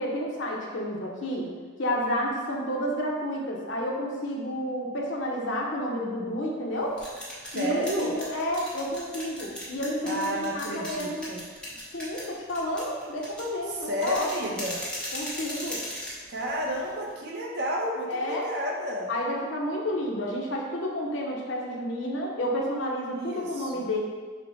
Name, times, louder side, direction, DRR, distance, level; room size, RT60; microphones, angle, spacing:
voice 1, 0.0-1.5 1.8-7.0 7.5-11.3 11.9-14.6 15.1-15.8 18.1-18.5 19.1-24.0, equal, 65° left, -1 dB, 0.8 m, -30 dB
sound 1, 6.7-17.1, left 1 dB, 5° left, 0.9 m, -39 dB
voice 2, 7.5-8.1 10.0-11.4 13.8-14.8 16.3-19.1 23.1-23.9, equal, 55° right, -1 dB, 0.7 m, -31 dB
6.1 x 2.1 x 4.0 m, 1.5 s
head